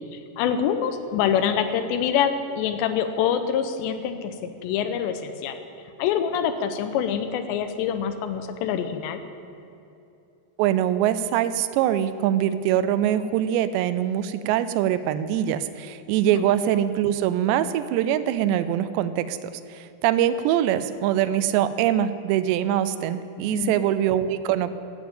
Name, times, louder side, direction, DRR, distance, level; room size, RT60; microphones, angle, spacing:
voice 1, 0.4-4.3 4.6-5.6 6.0-9.2 16.3-16.4 23.5-23.8, left 8 dB, 85° left, 9 dB, 2.9 m, -25 dB
voice 2, 10.6-24.7, right 11 dB, 85° right, 13 dB, 2.8 m, -23 dB
14.0 x 7.3 x 8.6 m, 2.8 s
omnidirectional pair, 5.1 m